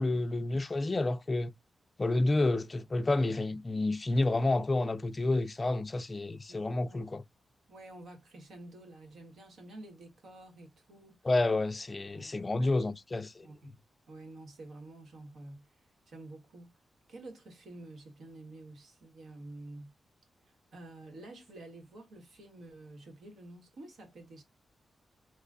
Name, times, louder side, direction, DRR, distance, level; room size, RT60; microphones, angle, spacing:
voice 1, 0.0-1.5 2.0-7.2 11.2-13.5, left 2 dB, 25° left, 0.3 m, -29 dB
voice 2, 6.5-7.0 7.7-11.3 12.1-12.8 13.4-13.8 14.1-16.8 17.1-19.9 20.7-24.4, right 2 dB, 75° right, 1.3 m, -50 dB
2.9 x 2.2 x 3.6 m
wide cardioid pair, 110°, 0 cm